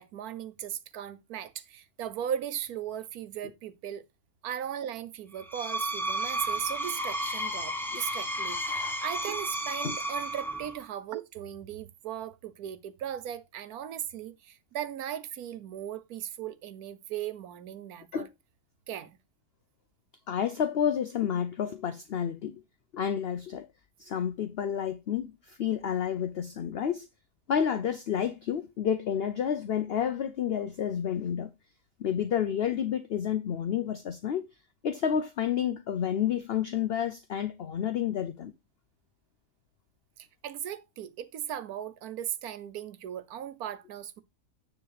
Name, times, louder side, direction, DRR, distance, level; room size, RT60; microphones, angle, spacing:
voice 1, 0.0-4.0 4.4-18.3 18.9-19.2 40.4-44.2, right 10 dB, 85° right, 1.3 m, -37 dB
Screech, 5.4-10.9, right 1 dB, ahead, 0.9 m, -32 dB
voice 2, 20.3-22.5 22.9-23.7 24.0-27.1 27.5-31.5 32.0-34.5 34.8-38.5, left 8 dB, 55° left, 0.7 m, -30 dB
9.7 x 3.6 x 4.8 m
omnidirectional pair, 1.5 m